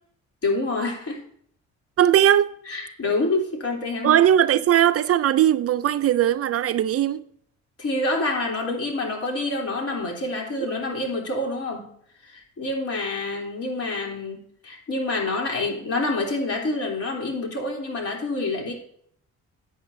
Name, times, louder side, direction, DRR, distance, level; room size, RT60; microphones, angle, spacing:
voice 1, 0.4-1.2 2.7-4.2 7.8-11.9 12.2-18.7, left 2 dB, 50° left, 3.2 m, -27 dB
voice 2, 2.0-2.5 4.0-7.2 10.6-10.7, right 11 dB, 50° right, 0.4 m, -19 dB
13.5 x 8.7 x 2.6 m
cardioid pair, 90°, 30 cm